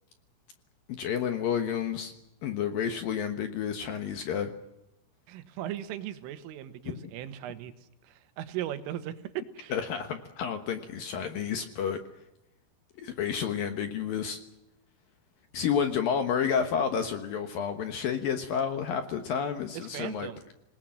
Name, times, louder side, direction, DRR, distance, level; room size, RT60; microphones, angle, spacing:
voice 1, 0.9-2.1 2.4-4.5 6.9-7.1 9.7-12.0 13.0-14.4 15.5-20.3, left 7 dB, 65° left, 7 dB, 2.3 m, -30 dB
voice 2, 5.3-7.7 8.0-9.8 19.7-20.4, right 12 dB, 90° right, 12 dB, 3.9 m, -38 dB
26.5 x 19.0 x 7.6 m, 0.87 s
omnidirectional pair, 5.6 m